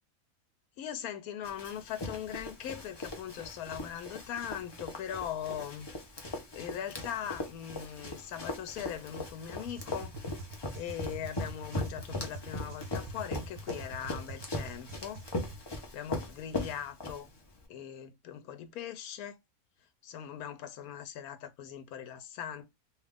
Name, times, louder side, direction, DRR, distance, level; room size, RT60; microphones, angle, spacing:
voice 1, 0.8-5.9 6.5-10.2 10.7-15.2 15.9-17.3 17.7-19.4 20.0-22.7, left 9 dB, 90° left, 1.1 m, -40 dB
Run, 1.4-17.6, left 2 dB, 35° left, 0.4 m, -40 dB
sound 1, 9.5-15.6, right 3 dB, 90° right, 1.2 m, -45 dB
2.9 x 2.4 x 3.4 m
omnidirectional pair, 1.5 m